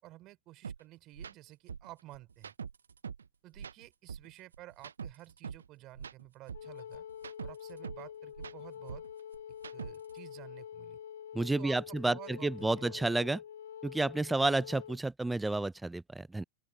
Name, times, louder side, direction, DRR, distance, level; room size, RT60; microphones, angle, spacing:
voice 1, 0.0-2.5 3.4-7.0 7.4-9.0 9.7-11.0 11.6-13.0, right 17 dB, 40° right, 3.5 m, -52 dB
sound 1, 0.6-0.8 1.1-1.3 1.7-3.3 3.5-5.7 5.9-8.1 8.3-10.2, right 6 dB, 80° right, 0.4 m, -44 dB
Wind instrument woodwind instrument, 6.5-15.0, left 9 dB, 70° left, 1.1 m, -46 dB
voice 2, 11.3-13.4 13.8-16.4, right 2 dB, 5° right, 0.4 m, -31 dB
open air
hypercardioid pair, 100°, 0 cm